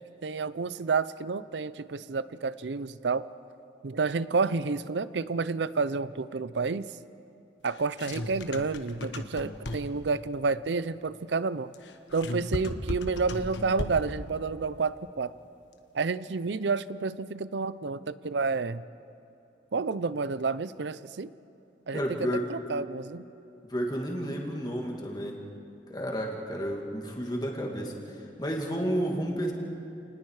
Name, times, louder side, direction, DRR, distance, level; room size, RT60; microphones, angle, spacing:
voice 1, 0.0-3.3 3.8-6.9 7.6-11.7 12.1-15.3 15.9-18.8 19.7-21.3 21.9-23.2, right 4 dB, 75° right, 16 dB, 0.6 m, -30 dB
sound 1, 7.6-10.1 11.7-14.2, left 1 dB, 90° left, 1.3 m, -35 dB
voice 2, 21.9-22.5 23.6-25.4 25.9-29.5, equal, 25° left, 0 dB, 2.4 m, -31 dB
29.0 x 20.0 x 4.9 m, 2.8 s
head